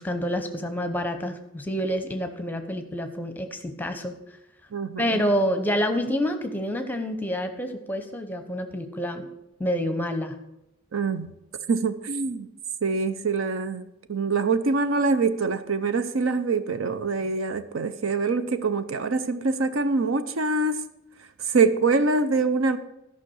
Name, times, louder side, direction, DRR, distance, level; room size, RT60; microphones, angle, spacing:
voice 1, 0.0-4.2 5.0-9.3 9.6-10.4, equal, 10° left, 7 dB, 0.8 m, -28 dB
voice 2, 4.7-5.2 10.9-11.3 11.7-12.5 12.8-20.8 21.5-22.8, right 4 dB, 65° right, 11 dB, 0.6 m, -24 dB
13.5 x 5.6 x 6.3 m, 0.91 s
head